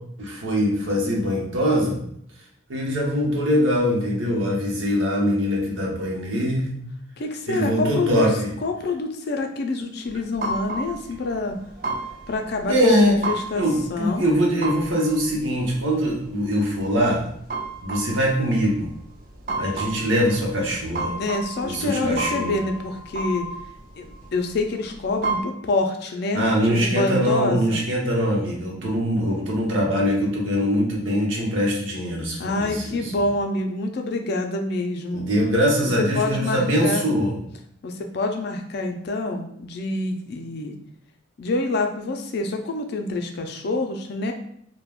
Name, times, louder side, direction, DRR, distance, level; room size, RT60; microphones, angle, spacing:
voice 1, 0.2-2.0 2.7-6.7 7.5-8.5 12.7-13.2 13.5-17.2 17.8-18.9 19.6-21.2 21.6-22.5 26.3-33.1 35.1-37.4, equal, 80° right, -2 dB, 0.8 m, -22 dB
voice 2, 7.2-8.3 8.6-11.6 12.3-12.7 13.0-13.6 13.9-14.3 21.2-23.5 24.0-27.8 32.4-35.2 36.1-37.0 37.8-40.7 41.4-44.3, left 2 dB, 55° left, 4 dB, 0.4 m, -27 dB
sound 1, 10.1-25.4, right 2 dB, 45° right, 0.4 m, -33 dB
2.3 x 2.1 x 3.4 m, 0.68 s
head